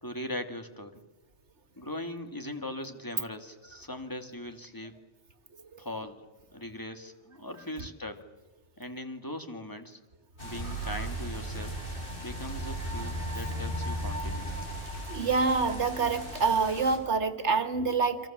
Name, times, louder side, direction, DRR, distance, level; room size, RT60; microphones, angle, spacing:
voice 1, 0.0-1.0 1.8-5.0 5.8-6.3 6.5-8.3 8.8-10.0 10.4-11.8 12.2-14.5, left 1 dB, 15° left, 6 dB, 2.2 m, -40 dB
sound 1, 10.4-17.0, right 1 dB, 45° left, 5.8 m, -36 dB
voice 2, 10.6-11.1 15.1-18.3, right 4 dB, 70° right, 10 dB, 2.2 m, -27 dB
30.0 x 26.0 x 7.4 m, 1.1 s
omnidirectional pair, 1.2 m